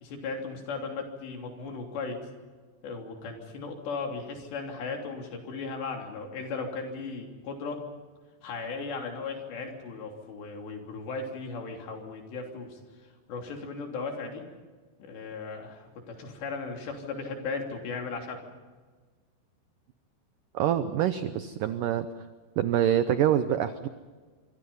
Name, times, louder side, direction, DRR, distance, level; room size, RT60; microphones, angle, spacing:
voice 1, 0.0-2.2 2.8-7.8 8.4-14.4 15.0-18.4, left 4 dB, 80° left, 2 dB, 5.4 m, -36 dB
voice 2, 20.5-22.3 22.6-23.9, right 10 dB, 80° right, 10 dB, 1.9 m, -26 dB
26.0 x 24.0 x 5.6 m, 1.4 s
omnidirectional pair, 4.9 m